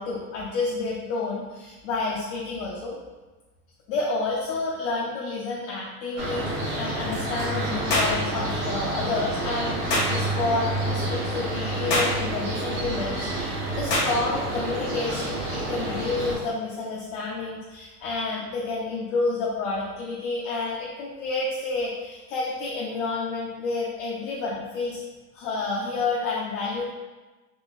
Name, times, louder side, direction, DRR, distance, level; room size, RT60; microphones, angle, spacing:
voice 1, 0.0-3.0 3.9-25.0 25.3-26.8, left 3 dB, 55° left, -5 dB, 0.7 m, -29 dB
sound 1, 6.2-16.4, right 2 dB, 55° right, 1.2 m, -29 dB
sound 2, 7.9-8.2 9.9-10.1 11.9-12.2 13.9-14.1, left 1 dB, 25° left, 0.5 m, -23 dB
3.7 x 2.6 x 2.5 m, 1.2 s
supercardioid pair, 140°, 46 cm